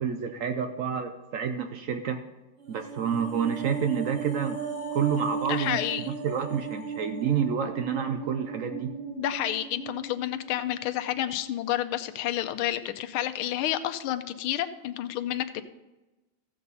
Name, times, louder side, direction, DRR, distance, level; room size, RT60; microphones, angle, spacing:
voice 1, 0.0-2.2 2.7-4.6 4.9-5.8 6.1-8.9, right 7 dB, 90° right, 6 dB, 0.7 m, -29 dB
sound 1, 2.6-11.0 11.3-11.5, right 5 dB, 70° right, 5.4 m, -36 dB
voice 2, 5.5-6.1 9.0-15.6, left 12 dB, 80° left, 9 dB, 1.5 m, -30 dB
14.5 x 7.7 x 4.1 m, 1.1 s
omnidirectional pair, 2.3 m